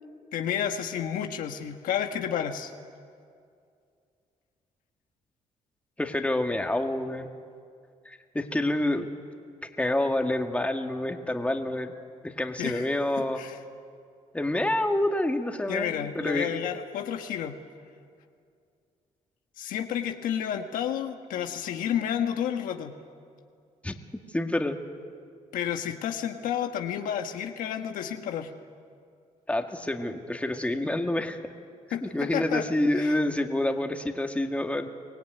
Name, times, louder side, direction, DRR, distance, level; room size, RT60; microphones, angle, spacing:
voice 1, 0.3-2.7 12.6-12.9 13.4-13.6 15.7-17.6 19.6-22.9 25.5-28.5 31.9-32.0 32.3-32.6 33.0-33.2, left 9 dB, 85° left, 6 dB, 1.4 m, -30 dB
voice 2, 6.0-7.3 8.1-9.1 9.8-11.9 12.2-13.4 14.3-16.6 23.8-24.0 24.3-24.8 29.5-31.5 32.0-34.9, left 1 dB, 10° left, 4 dB, 2.0 m, -28 dB
24.0 x 17.0 x 9.3 m, 2.3 s
cardioid pair, 70°, 14 cm